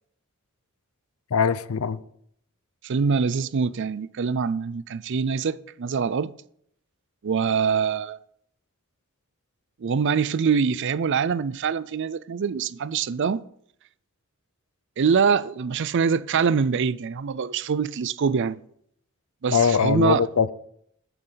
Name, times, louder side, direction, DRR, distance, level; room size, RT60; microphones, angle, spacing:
voice 1, 1.3-2.0 19.5-20.5, left 6 dB, 85° left, 0.6 m, -21 dB
voice 2, 2.8-6.3 7.2-8.2 9.8-13.4 15.0-18.6 19.4-20.2, right 6 dB, 55° right, 0.4 m, -24 dB
10.5 x 10.0 x 4.0 m
head